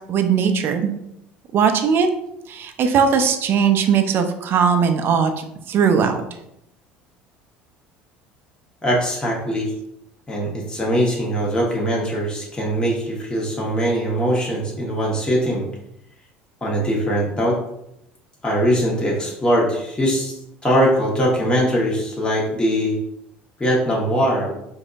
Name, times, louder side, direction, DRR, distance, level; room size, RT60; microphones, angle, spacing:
voice 1, 0.1-1.0 1.5-2.1 2.5-6.2, right 6 dB, 45° right, 7 dB, 0.5 m, -19 dB
voice 2, 8.8-9.7 10.3-15.6 16.6-17.6 18.4-20.3 20.6-23.0 23.6-24.5, equal, 15° left, -4 dB, 1.3 m, -21 dB
4.9 x 2.6 x 2.5 m, 0.79 s
hypercardioid pair, 70°, 5 cm